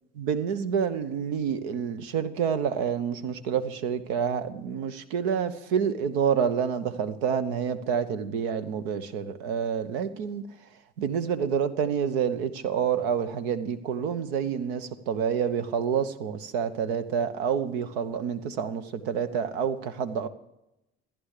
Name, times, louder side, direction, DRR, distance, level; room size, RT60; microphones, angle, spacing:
voice 1, 0.2-10.4 11.0-20.3, right 7 dB, 75° right, 12 dB, 1.0 m, -28 dB
14.5 x 10.5 x 6.7 m, 0.89 s
hypercardioid pair, 70°, 31 cm